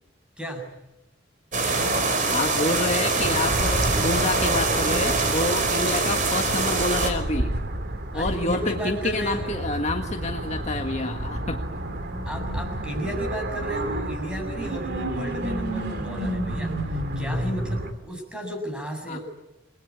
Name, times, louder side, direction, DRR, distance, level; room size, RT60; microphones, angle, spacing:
sound 1, 1.5-7.1, right 3 dB, 45° right, 4.9 m, -24 dB
voice 1, 2.3-7.5 8.1-11.6 19.1-19.2, left 2 dB, 35° left, 4 dB, 1.7 m, -28 dB
sound 2, 3.2-17.9, right 1 dB, 60° right, 2.6 m, -31 dB
voice 2, 8.1-9.6 12.2-19.2, right 1 dB, 5° right, 3 dB, 7.5 m, -33 dB
28.5 x 21.0 x 9.7 m, 0.92 s
head